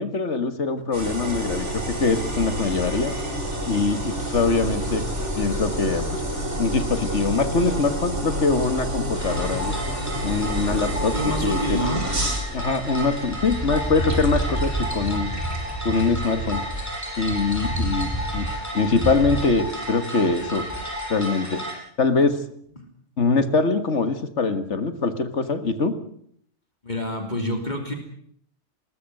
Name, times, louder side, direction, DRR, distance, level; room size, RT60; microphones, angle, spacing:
voice 1, 0.0-3.1 3.7-5.0 5.4-6.2 6.6-9.7 10.2-11.2 11.4-11.8 12.5-15.3 15.8-16.6 17.2-20.7 21.1-21.6 22.0-22.4 23.2-26.0, left 4 dB, 70° left, 10 dB, 2.1 m, -23 dB
sound 1, 0.9-16.2, equal, 70° right, 4.8 m, -29 dB
sound 2, 9.1-21.7, equal, 15° left, 6.6 m, -30 dB
voice 2, 11.1-12.0 22.8-22.9 26.8-27.9, equal, 35° left, 3 dB, 3.2 m, -27 dB
21.5 x 19.5 x 7.9 m, 0.66 s
omnidirectional pair, 1.3 m